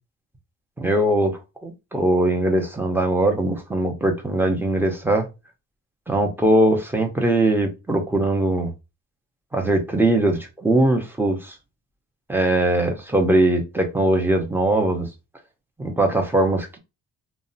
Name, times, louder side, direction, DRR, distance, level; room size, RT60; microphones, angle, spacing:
voice 1, 0.8-5.2 6.1-8.7 9.5-11.6 12.3-15.1 15.8-16.8, right 1 dB, 5° right, 0.6 m, -21 dB
2.7 x 2.1 x 2.6 m
cardioid pair, 90°, 30 cm